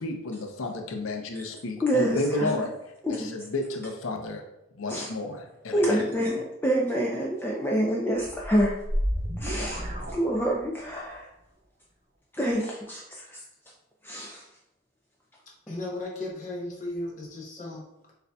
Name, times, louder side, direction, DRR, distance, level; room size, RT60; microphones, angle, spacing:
voice 1, 0.0-2.7 3.1-4.4 4.8-6.0, left 2 dB, 75° left, 3 dB, 0.6 m, -31 dB
voice 2, 1.8-2.7 3.0-3.3 4.9-5.1 5.7-8.7 9.4-11.3 12.3-13.4 14.0-14.4, equal, 10° left, -2 dB, 0.3 m, -27 dB
sound 1, 8.2-10.9, equal, 35° right, 0.7 m, -31 dB
voice 3, 15.7-17.9, left 1 dB, 35° left, -2 dB, 0.7 m, -35 dB
6.5 x 2.6 x 2.2 m, 0.86 s
head